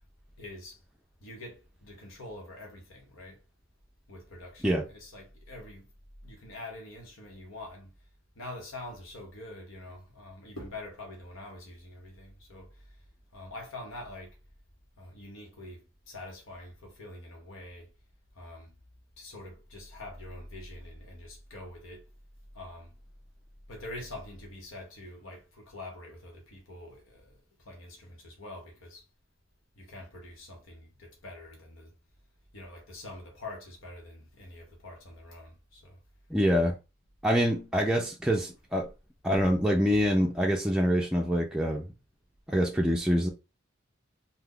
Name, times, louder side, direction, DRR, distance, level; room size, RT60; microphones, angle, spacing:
voice 1, 0.4-0.8 1.2-3.4 4.1-5.9 6.2-7.9 8.4-12.8 13.3-14.4 15.0-15.8 16.1-17.9 18.3-18.7 19.2-22.0 22.5-22.9 23.7-29.0 29.8-31.9 32.5-36.0, left 1 dB, 90° left, 0.9 m, -45 dB
voice 2, 36.3-36.8 37.2-38.9 39.2-41.9 42.5-43.3, equal, 5° right, 0.4 m, -25 dB
2.7 x 2.3 x 3.6 m
head